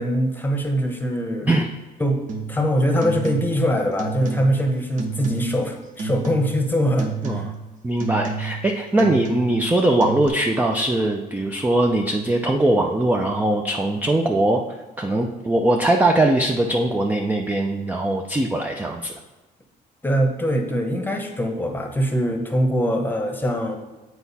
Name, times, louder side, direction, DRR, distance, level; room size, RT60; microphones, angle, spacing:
voice 1, 0.0-1.5 2.0-2.2 2.5-7.5 20.0-23.8, equal, 10° left, 3 dB, 1.0 m, -22 dB
sound 1, 2.3-2.6 3.0-3.7 4.0-4.7 5.0-5.6 6.0-6.7 7.0-7.6 8.0-8.7 9.0-9.7 10.0-10.3, right 4 dB, 50° right, 1.0 m, -30 dB
voice 2, 7.8-14.6 15.0-19.1, right 1 dB, 10° right, 2 dB, 0.5 m, -21 dB
7.9 x 4.6 x 4.1 m, 1.2 s
cardioid pair, 110°, 17 cm